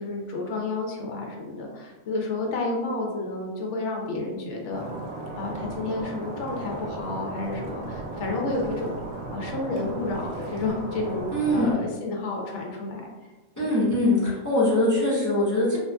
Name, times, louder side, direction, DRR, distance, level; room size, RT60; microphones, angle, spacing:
voice 1, 0.0-4.9 5.4-13.0 13.6-13.7, left 2 dB, 65° left, 0 dB, 0.9 m, -31 dB
Stream, 4.7-11.7, right 2 dB, 80° right, 0.4 m, -36 dB
voice 2, 11.3-11.8 13.6-15.8, left 1 dB, 25° left, -8 dB, 0.4 m, -22 dB
2.7 x 2.6 x 2.2 m, 1.2 s
omnidirectional pair, 1.4 m